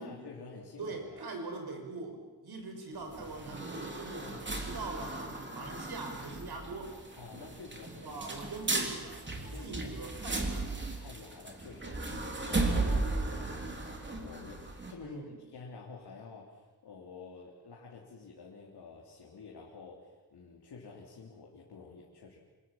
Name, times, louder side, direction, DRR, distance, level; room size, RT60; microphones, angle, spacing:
voice 1, 0.0-1.3 4.2-4.6 7.2-8.8 9.5-10.1 11.0-22.4, left 4 dB, 80° left, -2 dB, 3.4 m, -50 dB
voice 2, 0.8-4.3 4.6-7.0 8.0-10.8 15.0-15.4, right 3 dB, 75° right, 4 dB, 5.8 m, -42 dB
sound 1, 2.9-14.9, right 2 dB, 30° right, 3.4 m, -36 dB
27.0 x 21.5 x 7.4 m, 1.2 s
wide cardioid pair, 110°, 39 cm